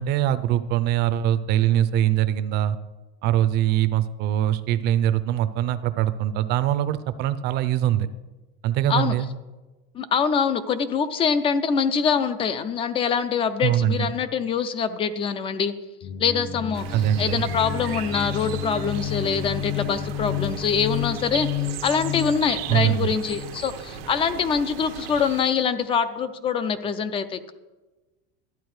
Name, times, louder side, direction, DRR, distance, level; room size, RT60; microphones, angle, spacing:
voice 1, 0.0-2.8 3.2-8.1 8.6-9.3 13.6-14.2 16.9-17.5 22.7-23.2, right 12 dB, 35° right, 12 dB, 0.5 m, -22 dB
voice 2, 9.9-15.8 16.2-16.9 17.2-21.5 21.8-27.5, left 6 dB, 20° left, 13 dB, 0.4 m, -24 dB
sound 1, 16.0-24.2, left 8 dB, 40° left, 0.9 m, -31 dB
sound 2, 16.7-25.4, right 11 dB, 90° right, 1.0 m, -38 dB
12.0 x 8.6 x 4.8 m, 1.1 s
supercardioid pair, 155°, 30 cm